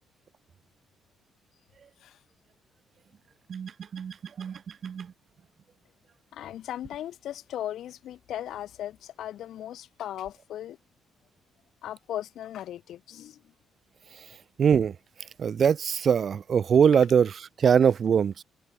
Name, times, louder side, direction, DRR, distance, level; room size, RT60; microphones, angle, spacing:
voice 1, 3.5-5.1 14.2-14.3 14.6-15.0 15.4-18.4, right 7 dB, 50° right, 0.6 m, -23 dB
voice 2, 6.3-10.8 11.8-13.4, left 11 dB, 75° left, 1.2 m, -37 dB
cardioid pair, 90°, 0 cm